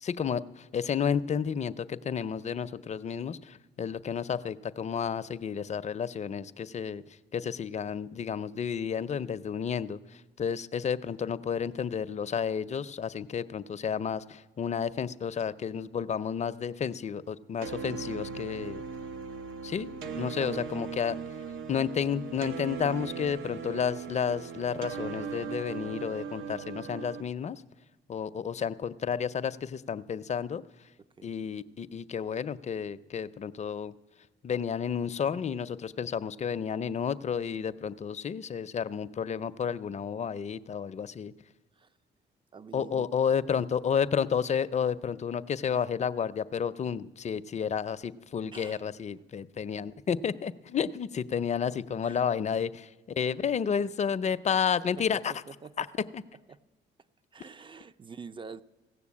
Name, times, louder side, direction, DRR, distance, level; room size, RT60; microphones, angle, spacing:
voice 1, 0.0-18.8 19.6-21.2 21.7-27.6 28.1-30.6 31.2-33.9 34.4-41.3 42.7-52.9 53.2-55.3 55.8-55.9 56.1-56.2, left 7 dB, 35° left, 13 dB, 0.5 m, -31 dB
sound 1, 17.6-27.2, right 6 dB, 80° right, 0.8 m, -39 dB
voice 2, 20.3-20.7 31.2-31.3 41.7-41.9 42.5-43.1 48.5-48.8 52.0-52.2 55.0-55.2 55.5-56.0 56.5-56.6 57.3-58.6, right 5 dB, 25° right, 15 dB, 0.4 m, -46 dB
16.0 x 6.8 x 8.5 m, 1.2 s
cardioid pair, 90°, 20 cm